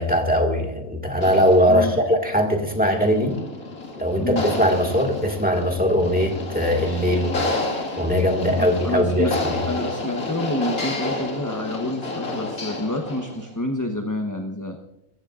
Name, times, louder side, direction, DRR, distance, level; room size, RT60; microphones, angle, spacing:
voice 1, 0.0-3.4 4.0-7.4 8.0-9.6, equal, 5° right, 3 dB, 1.8 m, -20 dB
sound 1, 1.1-13.5, left 2 dB, 80° left, 2.5 m, -30 dB
voice 2, 8.6-9.3 9.6-14.8, left 1 dB, 15° left, 3 dB, 0.8 m, -28 dB
22.5 x 15.0 x 2.5 m, 0.87 s
omnidirectional pair, 1.5 m